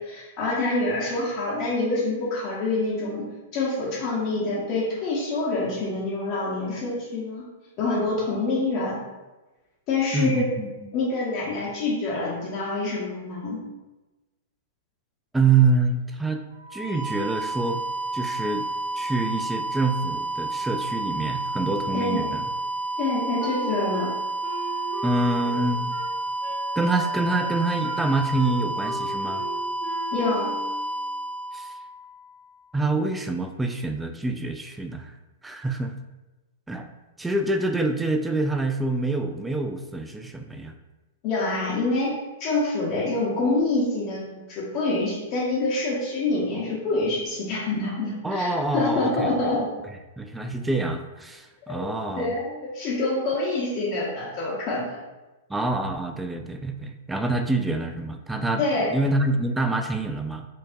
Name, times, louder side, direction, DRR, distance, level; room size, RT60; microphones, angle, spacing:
voice 1, 0.0-3.2 3.5-7.4 7.8-9.0 9.9-10.5 10.9-13.6 21.9-22.3 23.0-24.1 30.1-30.6 41.2-42.1 42.4-49.7 51.6-51.9 52.2-55.0 58.6-58.9, left 2 dB, 40° left, -6 dB, 0.9 m, -26 dB
voice 2, 10.1-10.7 15.3-16.4 16.7-17.8 18.1-18.7 19.0-22.4 25.0-25.9 26.8-29.4 31.5-31.7 32.7-35.1 35.4-36.0 36.7-36.9 37.2-40.7 48.2-49.4 50.2-52.3 55.5-58.6 58.9-60.5, right 3 dB, 5° right, 6 dB, 0.3 m, -26 dB
sound 1, 16.5-32.3, right 2 dB, 65° left, 1.1 m, -30 dB
Wind instrument woodwind instrument, 23.4-30.9, right 2 dB, 45° right, 0.9 m, -38 dB
4.3 x 2.6 x 2.6 m, 1.1 s
hypercardioid pair, 110°, 0 cm